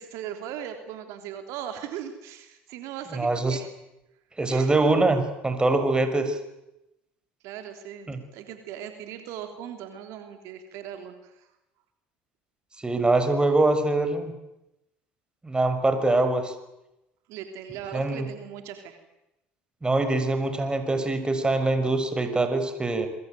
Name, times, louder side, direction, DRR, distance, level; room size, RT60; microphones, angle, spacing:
voice 1, 0.0-3.7 4.5-4.8 7.4-11.5 17.3-19.0, right 9 dB, 65° right, 6 dB, 3.5 m, -39 dB
voice 2, 3.1-3.6 4.4-6.3 8.1-8.2 12.8-14.3 15.4-16.5 17.9-18.3 19.8-23.1, right 2 dB, 15° right, 8 dB, 6.1 m, -23 dB
27.0 x 23.0 x 9.4 m, 0.91 s
hypercardioid pair, 70°, 5 cm